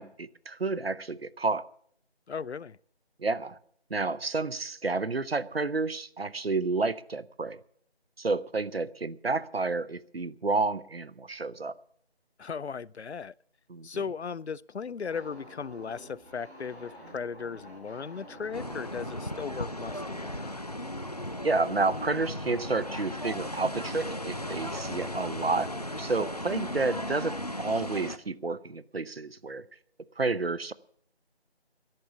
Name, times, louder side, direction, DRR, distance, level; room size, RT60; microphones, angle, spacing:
voice 1, 0.0-1.6 3.2-3.6 3.9-7.6 8.2-11.7 13.7-13.9 21.4-25.7 26.0-29.6 30.2-30.7, right 3 dB, 65° right, 0.8 m, -30 dB
voice 2, 2.3-2.8 12.4-13.3 13.8-20.7, left 6 dB, 80° left, 0.5 m, -37 dB
sound 1, 15.1-27.3, equal, ahead, 2.7 m, -49 dB
sound 2, 18.4-25.8, right 2 dB, 30° right, 6.7 m, -60 dB
sound 3, 18.5-28.2, left 1 dB, 35° left, 0.7 m, -36 dB
13.5 x 11.0 x 7.2 m
figure-of-eight pair, 170°, 32 cm